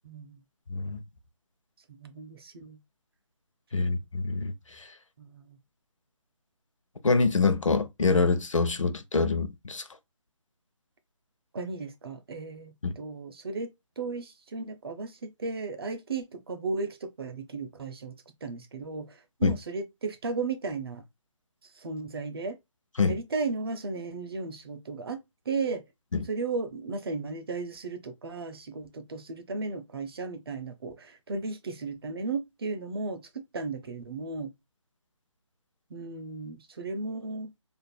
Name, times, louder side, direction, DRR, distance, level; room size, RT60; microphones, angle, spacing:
voice 1, 0.0-0.4 2.0-2.8 3.8-3.9 5.2-5.6 11.5-13.7 14.0-18.1 18.4-21.0 21.8-22.6 23.1-25.2 25.5-25.8 26.3-33.2 33.5-34.5 35.9-37.5, right 4 dB, 50° right, 0.7 m, -35 dB
voice 2, 0.7-1.0 3.7-4.9 7.0-9.8 12.8-12.9 19.4-19.6 23.0-23.1 26.1-26.3, left 4 dB, 80° left, 0.7 m, -25 dB
5.0 x 2.6 x 2.2 m
figure-of-eight pair, 150°, 16 cm